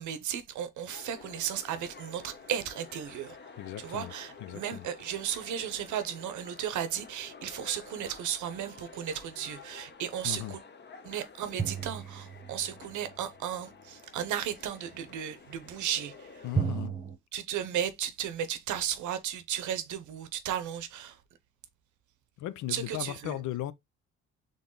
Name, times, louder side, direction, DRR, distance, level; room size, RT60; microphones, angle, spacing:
voice 1, 0.0-10.6 11.0-16.4 17.3-21.2 22.7-23.4, right 9 dB, 80° right, 0.9 m, -35 dB
sound 1, 0.9-16.6, left 5 dB, 35° left, 0.9 m, -51 dB
voice 2, 3.6-4.1 4.4-4.9 10.2-10.6 16.4-17.0 22.4-23.7, left 13 dB, 75° left, 0.6 m, -37 dB
sound 2, 11.6-13.2 16.5-17.1, right 6 dB, 15° right, 1.0 m, -33 dB
4.0 x 3.4 x 3.8 m
cardioid pair, 90°, 30 cm